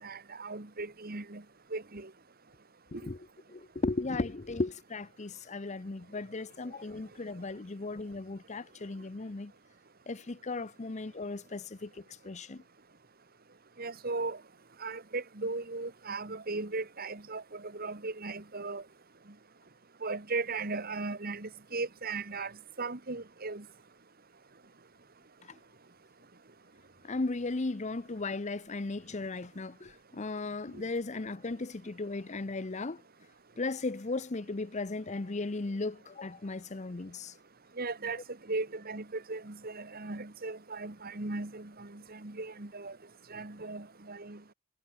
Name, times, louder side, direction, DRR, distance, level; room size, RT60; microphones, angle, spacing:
voice 1, 0.0-1.4 1.7-2.1 13.8-14.4 14.8-18.8 20.0-22.5 22.8-23.6 30.7-30.8 37.8-38.2 38.5-43.0 43.3-44.4, right 3 dB, 45° right, 1.8 m, -37 dB
voice 2, 3.5-9.5 10.1-12.6 27.0-33.0 33.6-37.3, left 3 dB, 35° left, 0.7 m, -36 dB
head